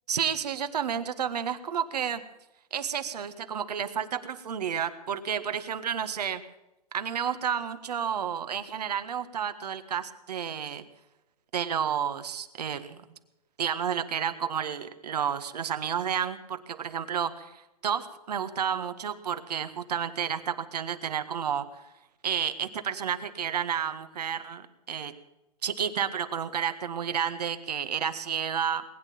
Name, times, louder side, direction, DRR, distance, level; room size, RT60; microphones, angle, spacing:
voice 1, 0.1-2.2 2.7-6.4 6.9-10.8 11.5-13.0 13.6-21.6 22.2-25.1 25.6-28.8, right 8 dB, 80° right, 10 dB, 1.6 m, -31 dB
20.5 x 9.4 x 7.1 m, 0.93 s
hypercardioid pair, 120°, 20 cm